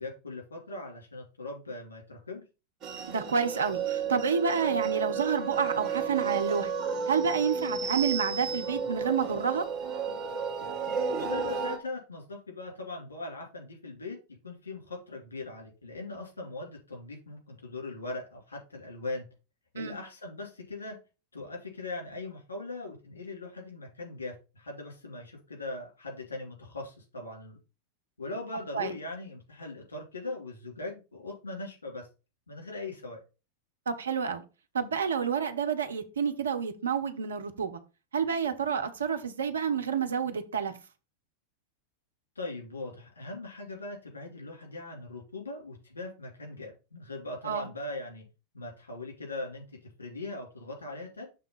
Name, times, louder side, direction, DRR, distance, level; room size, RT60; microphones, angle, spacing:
voice 1, 0.0-2.4 11.1-14.2 14.4-19.3 19.7-21.0 21.3-27.6 28.2-32.1 32.5-33.2 42.3-48.2 48.5-51.3, left 2 dB, 75° left, 3.0 m, -40 dB
sound 1, 2.8-11.8, right 6 dB, 35° right, 1.9 m, -32 dB
voice 2, 3.1-6.7 7.1-9.6 19.7-20.0 28.7-28.9 33.9-34.4 34.7-37.8 38.1-40.7 47.4-47.7, right 6 dB, 70° right, 0.9 m, -29 dB
6.8 x 3.7 x 5.5 m
figure-of-eight pair, 90°, 0 cm